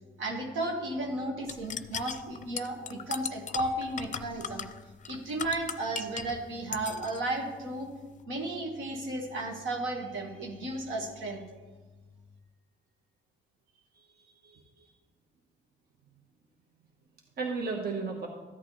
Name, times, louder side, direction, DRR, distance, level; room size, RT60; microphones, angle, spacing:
voice 1, 0.2-4.7 5.1-7.9 8.3-11.4, right 2 dB, 80° right, 1 dB, 1.7 m, -34 dB
sound 1, 1.5-6.4 6.7-7.2, left 7 dB, 40° left, 0.5 m, -37 dB
voice 2, 13.9-14.9 17.4-18.3, right 4 dB, 50° right, 1 dB, 1.4 m, -35 dB
13.5 x 8.4 x 3.3 m, 1.3 s
cardioid pair, 90°, 20 cm